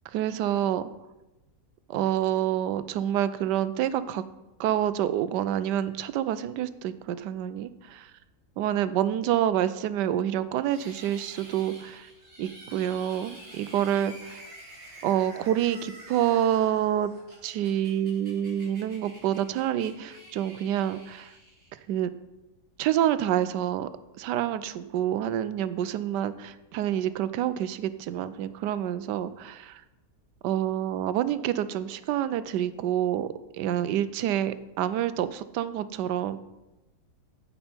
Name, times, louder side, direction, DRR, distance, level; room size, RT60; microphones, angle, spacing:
voice 1, 0.1-0.9 1.9-4.2 4.6-8.1 8.6-12.1 12.4-14.1 15.0-17.1 17.4-21.3 21.9-22.1 22.8-23.9 24.2-29.8 30.4-33.3 33.6-36.4, right 11 dB, 90° right, 14 dB, 1.2 m, -27 dB
sound 1, 10.6-22.0, right 1 dB, 35° right, 3.4 m, -49 dB
14.5 x 5.6 x 4.4 m, 1.0 s
omnidirectional pair, 1.8 m